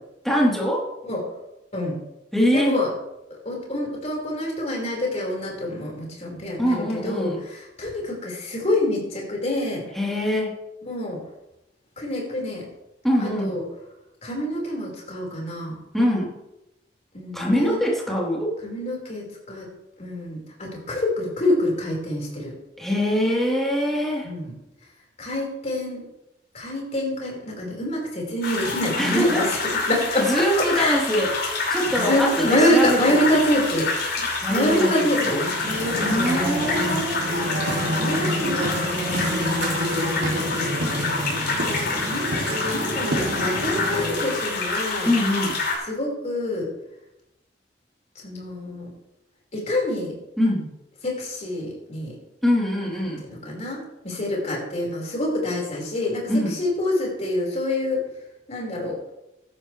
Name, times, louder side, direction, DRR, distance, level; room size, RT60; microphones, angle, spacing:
voice 1, 0.2-0.9 2.3-2.8 6.6-7.4 10.0-10.6 13.0-13.5 15.9-16.3 17.3-18.6 22.8-24.3 29.0-29.5 30.3-31.3 31.7-33.0 34.4-35.4 36.0-37.2 45.1-45.6 50.4-50.7 52.4-53.2 56.3-56.6, equal, ahead, -5 dB, 3.7 m, -23 dB
voice 2, 2.5-2.9 3.5-9.9 10.8-11.2 12.0-12.7 13.2-13.6 14.2-15.8 17.1-17.8 18.6-19.7 20.0-22.5 24.2-24.6 25.2-26.1 26.5-29.6 29.9-30.5 30.7-31.0 31.8-33.9 34.5-36.4 36.8-37.0 37.9-39.3 39.9-40.9 41.6-42.3 42.7-45.1 45.8-46.7 48.2-48.9 49.5-50.1 51.0-52.2 53.2-58.0 58.5-59.0, left 1 dB, 40° left, -2 dB, 5.2 m, -26 dB
sound 1, 28.4-45.8, left 3 dB, 65° left, 6.0 m, -27 dB
sound 2, 35.5-44.4, equal, 80° right, 3.0 m, -28 dB
16.0 x 12.5 x 3.4 m, 0.89 s
head